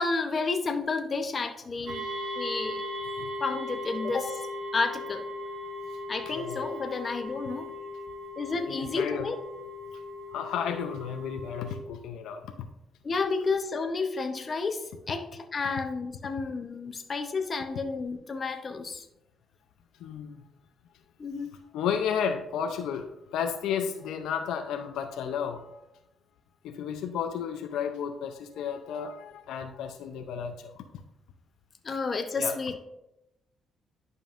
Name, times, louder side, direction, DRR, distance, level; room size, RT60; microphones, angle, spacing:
voice 1, 0.0-2.0 2.3-2.8 3.4-4.4 4.7-5.2 6.1-7.7 8.4-9.4 13.0-19.1 21.2-21.5 31.8-32.9, left 4 dB, 40° left, 6 dB, 0.8 m, -31 dB
sound 1, 1.9-11.7, left 1 dB, 60° right, 2.0 m, -38 dB
voice 2, 6.3-6.8 8.7-9.3 10.3-12.5 20.0-20.4 21.7-25.8 26.6-30.7 32.4-32.6, left 7 dB, 85° left, 5 dB, 0.5 m, -33 dB
11.0 x 5.3 x 2.5 m, 0.89 s
cardioid pair, 90°, 0 cm